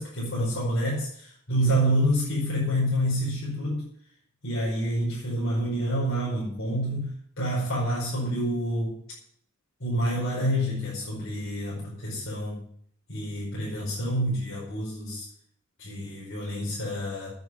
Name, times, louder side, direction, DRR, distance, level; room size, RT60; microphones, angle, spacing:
voice 1, 0.0-3.9 4.4-7.1 7.4-9.0 9.8-12.6 13.1-15.2 15.8-17.3, equal, 60° left, -6 dB, 5.1 m, -28 dB
9.3 x 8.8 x 9.6 m, 0.63 s
head